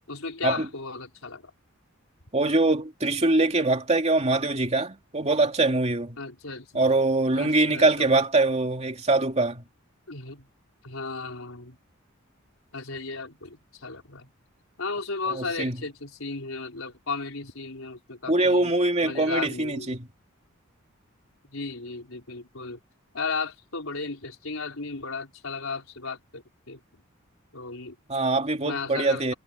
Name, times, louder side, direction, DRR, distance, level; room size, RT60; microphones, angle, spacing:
voice 1, 0.1-1.4 6.2-6.8 7.3-8.1 10.1-10.5 10.8-11.8 12.7-14.3 14.8-18.8 19.0-20.0 21.5-22.8 23.1-26.8 27.5-28.0 28.6-29.3, left 4 dB, 90° left, 4.4 m, -35 dB
voice 2, 2.3-6.2 6.7-9.6 15.3-15.8 18.3-20.1 28.1-29.3, right 2 dB, 30° right, 2.7 m, -23 dB
head